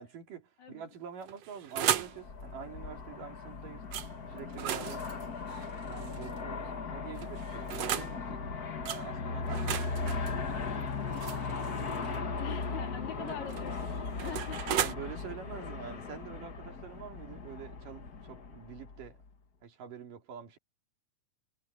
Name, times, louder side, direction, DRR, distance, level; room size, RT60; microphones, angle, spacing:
voice 1, 0.0-3.8 4.3-5.1 5.8-8.4 8.8-12.5 13.2-13.4 14.2-14.4 14.8-19.2 19.6-20.6, right 7 dB, 80° right, 4.5 m, -46 dB
sound 1, 1.2-2.2 3.9-4.1 4.5-6.4 7.2-8.1 8.9-9.0 9.5-12.2 13.3-14.9, right 10 dB, 60° right, 2.0 m, -35 dB
Aircraft, 2.0-19.3, left 4 dB, 40° left, 1.5 m, -38 dB
voice 2, 12.4-15.1, left 10 dB, 60° left, 3.8 m, -44 dB
omnidirectional pair, 3.7 m